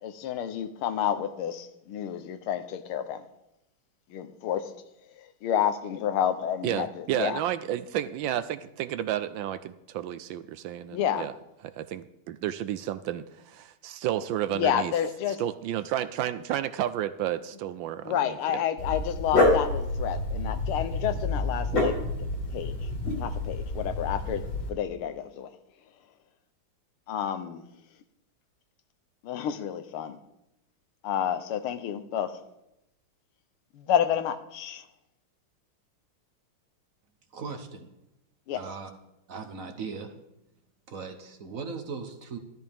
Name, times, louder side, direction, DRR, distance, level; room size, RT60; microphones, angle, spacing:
voice 1, 0.0-3.2 4.1-4.7 5.1-7.4 10.9-11.3 14.5-15.4 18.0-21.9 22.5-22.9 23.2-24.4 24.7-25.5 27.1-27.6 29.2-30.2 31.0-32.3 33.7-34.8 38.5-38.6, left 9 dB, 80° left, 1.7 m, -30 dB
voice 2, 6.6-11.3 11.6-14.9 15.4-18.6, right 11 dB, 75° right, 1.1 m, -31 dB
Dog, 18.8-24.7, left 2 dB, 65° left, 3.1 m, -28 dB
voice 3, 37.3-37.9 38.5-38.9 39.3-40.1 40.9-42.4, right 5 dB, 50° right, 1.1 m, -38 dB
13.5 x 13.0 x 3.5 m
omnidirectional pair, 2.4 m